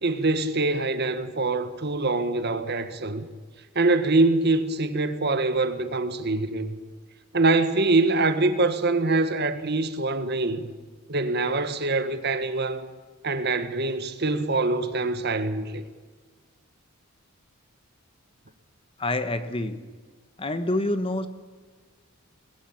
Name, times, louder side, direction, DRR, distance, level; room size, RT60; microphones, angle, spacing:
voice 1, 0.0-3.3 3.7-6.8 7.3-10.7 11.1-12.9 13.2-15.8, right 2 dB, 50° right, 1.5 m, -24 dB
voice 2, 19.0-19.8 20.4-21.3, left 1 dB, 25° left, 1.2 m, -27 dB
20.5 x 16.5 x 8.7 m
head